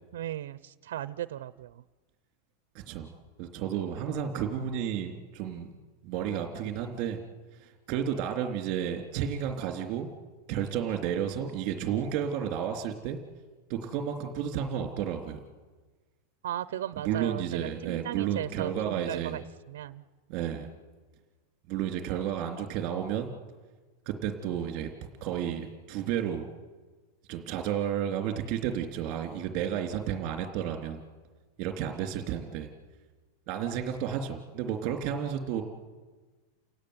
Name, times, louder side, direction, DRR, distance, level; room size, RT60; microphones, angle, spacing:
voice 1, 0.1-1.8 16.4-19.4 19.7-20.0, right 12 dB, 85° right, 15 dB, 0.8 m, -36 dB
voice 2, 3.4-5.7 6.0-7.2 7.6-10.1 10.5-13.2 13.7-15.4 16.9-19.4 20.3-20.7 21.7-23.3 24.0-24.9 25.2-26.5 27.3-31.0 31.6-32.7 33.5-35.6, right 9 dB, 35° right, 6 dB, 3.3 m, -32 dB
29.5 x 17.0 x 9.8 m, 1.3 s
supercardioid pair, 165°, 0 cm